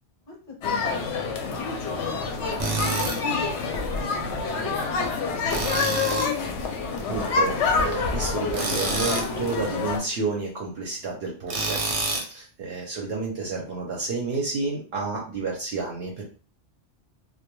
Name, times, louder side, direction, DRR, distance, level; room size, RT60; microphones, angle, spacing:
voice 1, 0.3-5.9, left 2 dB, 55° left, 1 dB, 0.9 m, -43 dB
sound 1, 0.6-10.0, left 4 dB, 80° left, 0.9 m, -27 dB
Tools, 2.6-3.2 5.5-6.4 8.5-9.3 11.5-12.3, right 3 dB, 50° right, 0.4 m, -27 dB
voice 2, 7.1-11.8 12.3-16.2, right 4 dB, 65° right, -2 dB, 0.8 m, -30 dB
2.2 x 2.2 x 2.9 m, 0.38 s
omnidirectional pair, 1.2 m